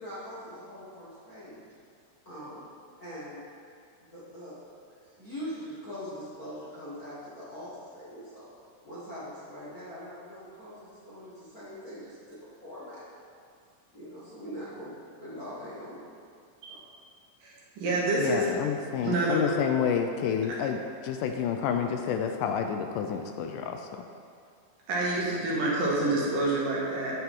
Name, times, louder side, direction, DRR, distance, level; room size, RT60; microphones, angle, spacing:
voice 1, 0.0-1.6 2.2-2.7 3.0-3.5 4.1-4.6 5.2-8.5 8.8-13.0 13.9-14.9 15.2-16.0 16.7-16.8, equal, 35° left, -10 dB, 1.6 m, -42 dB
voice 2, 17.4-18.5 19.0-19.5 24.9-27.1, right 2 dB, 75° right, -5 dB, 3.4 m, -27 dB
voice 3, 18.2-24.1, left 7 dB, 80° left, 5 dB, 2.1 m, -29 dB
9.0 x 8.8 x 3.7 m, 2.3 s
omnidirectional pair, 3.9 m